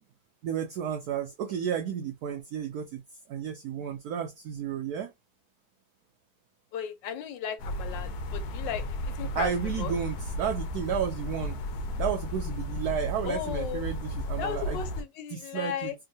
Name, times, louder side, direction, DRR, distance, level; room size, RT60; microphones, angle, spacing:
voice 1, 0.4-3.0 3.3-5.1 9.3-11.6 12.0-14.8 15.3-15.9, right 8 dB, 70° right, 1.0 m, -32 dB
voice 2, 6.7-9.5 9.8-9.9 13.2-13.8 14.4-15.9, left 9 dB, 85° left, 1.4 m, -35 dB
sound 1, 7.6-15.0, left 1 dB, 70° left, 0.9 m, -34 dB
3.6 x 2.2 x 2.6 m
omnidirectional pair, 1.9 m